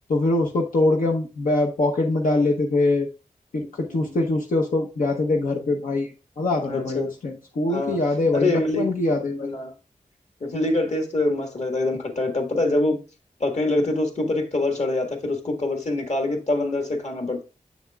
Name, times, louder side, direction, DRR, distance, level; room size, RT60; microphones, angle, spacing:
voice 1, 0.1-3.1 3.5-6.1 6.4-8.5 8.8-9.5, left 2 dB, 90° left, 0.9 m, -23 dB
voice 2, 3.6-4.2 6.6-7.1 7.7-8.0 8.3-8.9 9.4-9.7 10.4-13.0 13.4-17.4, left 2 dB, 55° left, 1.6 m, -25 dB
7.3 x 7.0 x 2.3 m
wide cardioid pair, 70°, 14 cm